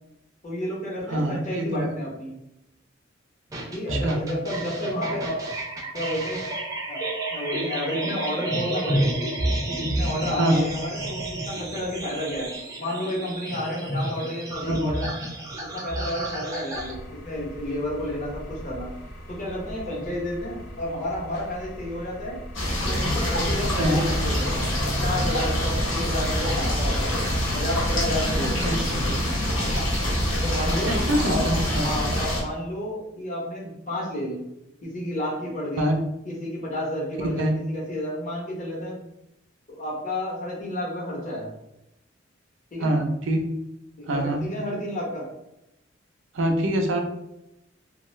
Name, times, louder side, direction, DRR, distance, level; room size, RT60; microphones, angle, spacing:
voice 1, 0.4-2.4 3.7-5.4 5.9-6.5 6.9-9.1 9.7-12.5 12.8-15.1 15.7-18.9 19.3-22.4 22.8-24.7 25.0-27.3 27.5-29.2 30.4-30.9 31.2-34.4 34.8-35.9 36.2-39.0 39.7-41.5 42.7-42.9 44.0-45.3, left 1 dB, 40° left, -3 dB, 0.9 m, -31 dB
voice 2, 1.1-1.9 3.9-4.2 10.4-10.7 14.6-14.9 23.8-24.0 28.6-29.0 30.9-31.9 35.8-36.0 37.2-37.5 42.8-43.5 44.1-44.5 46.3-47.0, right 1 dB, 75° right, 4 dB, 0.5 m, -24 dB
sound 1, 3.5-16.9, right 1 dB, 15° right, 0.4 m, -30 dB
sound 2, 16.7-27.8, equal, 55° left, 0.6 m, -41 dB
sound 3, 22.5-32.4, equal, 85° left, 0.9 m, -25 dB
2.6 x 2.3 x 3.1 m, 0.87 s
head